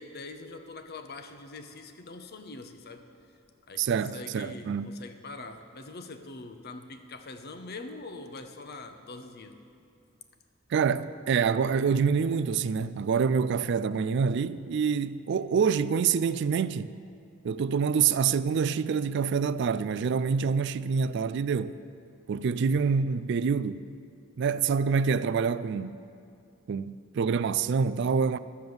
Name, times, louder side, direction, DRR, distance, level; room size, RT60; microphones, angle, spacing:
voice 1, 0.0-3.0 3.7-9.6, left 3 dB, 50° left, 0.8 m, -43 dB
voice 2, 3.8-4.9 10.7-16.9 17.4-21.8 22.3-23.8 24.4-26.0 26.7-28.4, right 6 dB, 60° right, 0.3 m, -26 dB
12.5 x 7.0 x 7.9 m
head